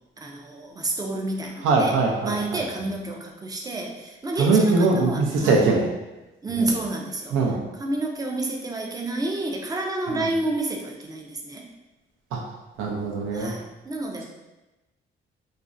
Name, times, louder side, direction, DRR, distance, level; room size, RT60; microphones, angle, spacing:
voice 1, 0.2-5.7 6.4-11.7 13.3-14.2, right 2 dB, 20° right, 1 dB, 0.4 m, -30 dB
voice 2, 1.6-2.4 4.4-5.9 7.3-7.6 12.3-12.4 12.8-13.5, right 3 dB, 85° right, -1 dB, 0.5 m, -21 dB
2.4 x 2.0 x 2.5 m, 1.0 s
cardioid pair, 90°, 20 cm